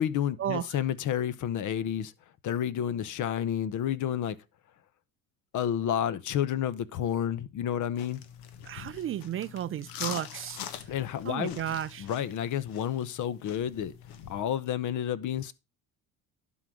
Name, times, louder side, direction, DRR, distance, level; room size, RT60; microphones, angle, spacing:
voice 1, 0.0-2.1 2.4-4.4 5.5-8.2 10.9-11.6 12.0-13.9 14.3-15.5, left 10 dB, 55° left, 0.9 m, -30 dB
sound 1, 7.9-14.4, left 9 dB, 80° left, 1.3 m, -43 dB
voice 2, 8.7-10.6 11.2-12.1, right 11 dB, 35° right, 0.4 m, -33 dB
11.5 x 4.0 x 6.1 m
cardioid pair, 110°, 36 cm